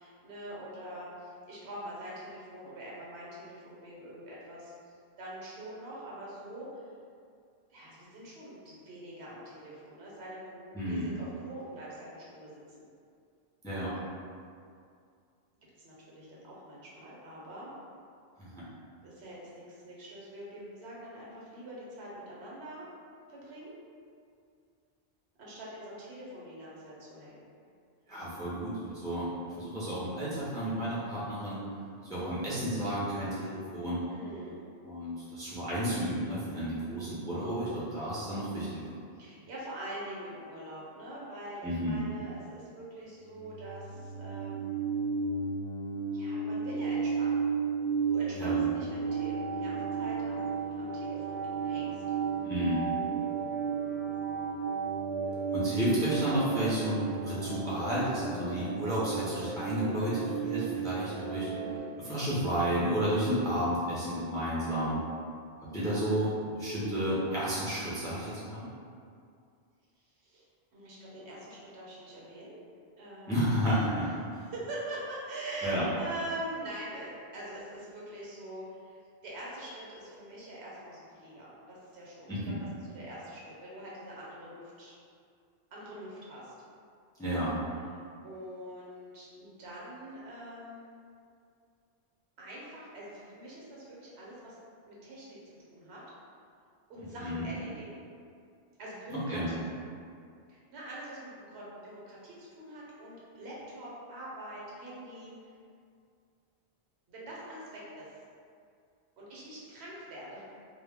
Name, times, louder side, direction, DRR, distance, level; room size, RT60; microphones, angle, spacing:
voice 1, 0.0-6.9 7.7-12.8 15.8-17.7 19.0-22.9 23.3-23.7 25.4-27.4 34.1-34.6 39.1-44.8 46.1-47.5 48.0-52.0 70.2-70.4 70.7-72.6 73.0-82.4 82.8-84.9 85.7-86.5 87.9-90.9 92.4-94.6 94.9-95.4 95.7-96.0 96.9-98.0 98.8-99.7 100.5-105.3 107.1-108.1 109.2-110.4, right 1 dB, 75° right, -6 dB, 1.0 m, -44 dB
voice 2, 10.7-11.1 13.6-13.9 18.4-18.6 28.1-29.3 29.6-31.6 32.1-34.0 34.8-39.0 41.6-42.0 48.4-48.6 52.4-52.9 55.5-61.5 62.0-65.0 65.6-68.7 73.3-74.4 75.6-75.8 82.3-82.6 87.2-87.6 97.2-97.4 99.1-99.5, equal, 5° left, -9 dB, 0.4 m, -32 dB
sound 1, 43.1-61.8, right 5 dB, 55° right, 0.5 m, -33 dB
2.2 x 2.1 x 3.3 m, 2.3 s
omnidirectional pair, 1.1 m